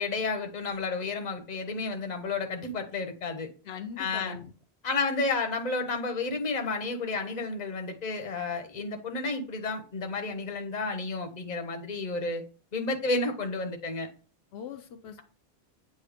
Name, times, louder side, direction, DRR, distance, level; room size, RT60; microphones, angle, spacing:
voice 1, 0.0-3.5 4.0-4.4 4.8-12.4 12.7-14.1, left 3 dB, 45° left, 1.0 m, -31 dB
voice 2, 3.7-4.5 14.5-15.2, left 8 dB, 80° left, 0.8 m, -41 dB
7.9 x 2.7 x 5.0 m
omnidirectional pair, 1.1 m